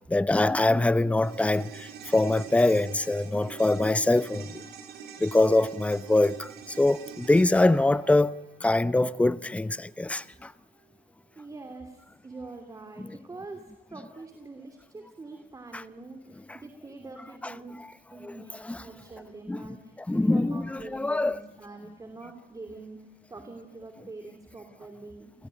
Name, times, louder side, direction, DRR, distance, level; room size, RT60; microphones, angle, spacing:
voice 1, 0.1-1.9 2.1-4.5 5.2-6.5 6.8-8.3 8.6-10.2 18.2-18.3 18.7-18.8 19.5-19.7 20.1-20.6 20.9-21.4, left 2 dB, 5° left, 0.8 m, -23 dB
sound 1, 1.2-9.7 9.9-10.0, right 7 dB, 75° right, 5.0 m, -46 dB
voice 2, 11.3-17.8 18.1-23.0 23.3-25.3, right 3 dB, 20° right, 3.0 m, -44 dB
29.0 x 18.5 x 9.1 m
cardioid pair, 110°, 17 cm